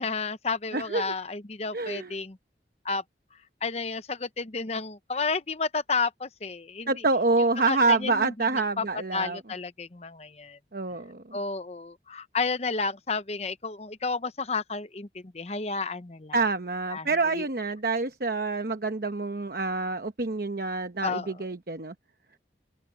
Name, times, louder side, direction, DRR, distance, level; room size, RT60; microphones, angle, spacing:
voice 1, 0.0-2.4 2.8-3.0 3.6-6.9 7.7-8.8 9.1-10.6 11.3-16.5 16.9-17.4 21.0-21.5, left 4 dB, 35° left, 0.8 m, -31 dB
voice 2, 0.7-1.1 1.7-2.1 6.9-9.4 10.7-11.4 16.3-21.9, right 3 dB, 55° right, 1.0 m, -27 dB
open air
head